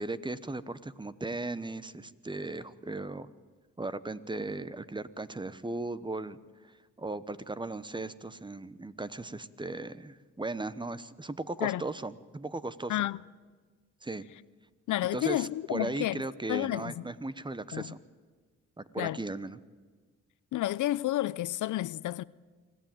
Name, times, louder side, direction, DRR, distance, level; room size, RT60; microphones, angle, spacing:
voice 1, 0.0-3.3 3.8-6.4 6.6-13.0 14.0-14.2 15.1-18.0 18.8-19.6, right 2 dB, 15° right, 1.0 m, -37 dB
voice 2, 14.9-16.2 16.5-17.0 17.7-17.9 19.0-19.2 20.5-22.2, left 15 dB, 75° left, 0.6 m, -30 dB
25.0 x 15.5 x 9.1 m
cardioid pair, 80°, 31 cm